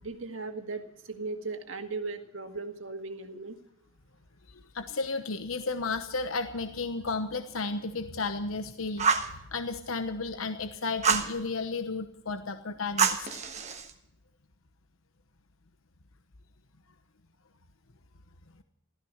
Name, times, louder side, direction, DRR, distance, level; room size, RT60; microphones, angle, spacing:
voice 1, 0.0-3.6, right 3 dB, 70° right, 6 dB, 2.0 m, -37 dB
voice 2, 4.5-13.3, left 3 dB, 80° left, 8 dB, 1.1 m, -33 dB
Fire, 9.0-9.3 11.0-11.3 13.0-13.9, right 5 dB, 35° right, 1.4 m, -26 dB
15.5 x 14.0 x 6.5 m, 0.80 s
head